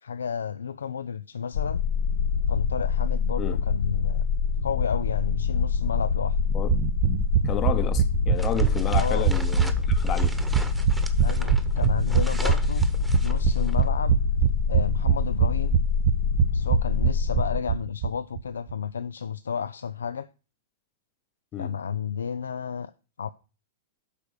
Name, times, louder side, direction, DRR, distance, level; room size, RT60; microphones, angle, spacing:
voice 1, 0.0-1.8 2.5-4.2 4.6-6.4 8.9-9.3 11.2-12.8 13.2-14.1 14.7-15.8 16.5-20.3 21.6-22.9 23.2-23.3, left 7 dB, 85° left, 0.4 m, -32 dB
sound 1, 1.5-17.6, left 6 dB, 70° left, 0.8 m, -26 dB
sound 2, 6.4-18.1 18.4-18.5 18.7-18.8, right 11 dB, 50° right, 0.6 m, -24 dB
voice 2, 7.4-10.4 21.5-21.7, left 9 dB, 30° left, 0.8 m, -31 dB
sound 3, 8.3-13.8, right 2 dB, 5° right, 1.0 m, -40 dB
8.2 x 5.3 x 6.4 m
hypercardioid pair, 115°, 0 cm